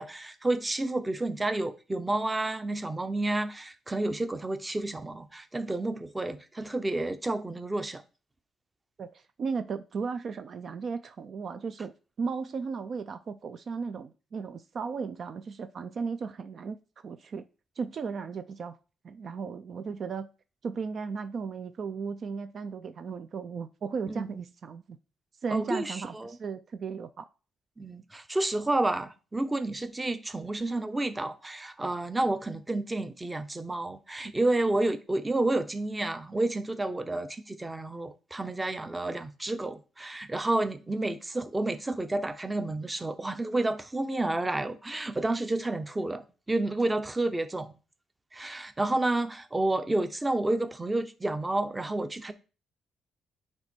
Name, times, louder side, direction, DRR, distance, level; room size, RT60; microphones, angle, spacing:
voice 1, 0.0-8.0 24.2-24.4 25.5-26.4 27.8-47.7 48.3-52.3, right 2 dB, 15° right, 0.7 m, -30 dB
voice 2, 9.0-11.9 12.2-16.8 17.0-17.4 17.8-18.8 19.0-20.3 20.6-25.0 25.4-27.3, right 5 dB, 50° right, 0.4 m, -35 dB
8.7 x 3.3 x 4.4 m
cardioid pair, 90°, 0 cm